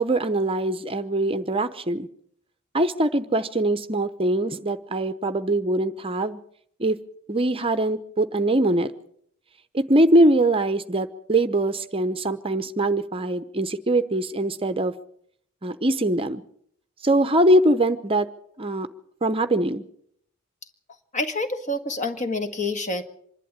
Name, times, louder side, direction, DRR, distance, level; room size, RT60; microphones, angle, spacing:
voice 1, 0.0-2.1 2.7-6.4 6.8-7.0 7.3-8.9 9.7-14.9 15.6-16.4 17.0-18.3 18.6-18.9 19.2-19.8, right 1 dB, 25° right, 11 dB, 0.8 m, -22 dB
voice 2, 21.1-23.0, left 2 dB, 35° left, 8 dB, 1.8 m, -27 dB
25.5 x 11.5 x 8.8 m, 0.68 s
head